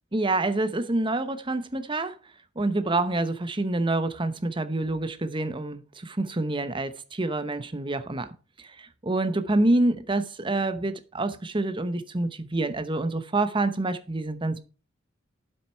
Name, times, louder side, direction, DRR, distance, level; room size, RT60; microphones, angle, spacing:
voice 1, 0.1-2.2 2.6-8.3 8.6-14.6, right 2 dB, 25° right, 0.9 m, -27 dB
9.4 x 7.8 x 4.5 m
head